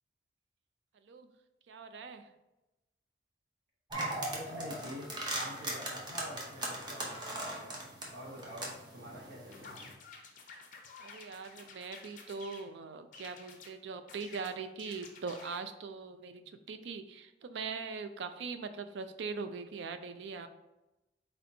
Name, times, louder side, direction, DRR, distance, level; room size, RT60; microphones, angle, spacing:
voice 1, 1.7-2.3 11.0-20.5, right 4 dB, 70° right, 9 dB, 0.4 m, -41 dB
sound 1, 3.9-9.9, right 1 dB, 25° right, 0.7 m, -39 dB
voice 2, 4.3-7.8 8.1-9.9, equal, 85° right, -4 dB, 1.5 m, -47 dB
sound 2, 9.5-12.7 13.1-13.7 14.1-15.7, left 4 dB, 45° left, 0.6 m, -52 dB
4.2 x 4.2 x 2.7 m, 1.0 s
head